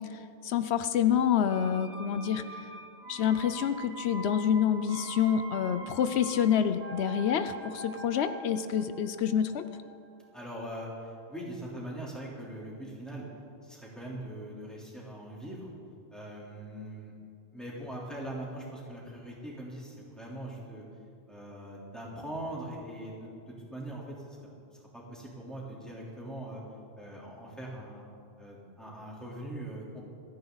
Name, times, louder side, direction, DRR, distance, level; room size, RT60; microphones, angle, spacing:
voice 1, 0.1-2.4 3.1-9.6, left 8 dB, 90° left, 11 dB, 0.9 m, -27 dB
sound 1, 1.5-11.2 11.5-11.6, right 2 dB, 85° right, 1.5 m, -44 dB
voice 2, 10.3-13.3 13.6-15.7 16.1-17.1 17.5-20.8 21.3-24.4 24.7-26.6 27.0-28.0 28.4-30.0, right 1 dB, ahead, -5 dB, 3.4 m, -41 dB
28.5 x 9.8 x 4.0 m, 2.6 s
omnidirectional pair, 1.1 m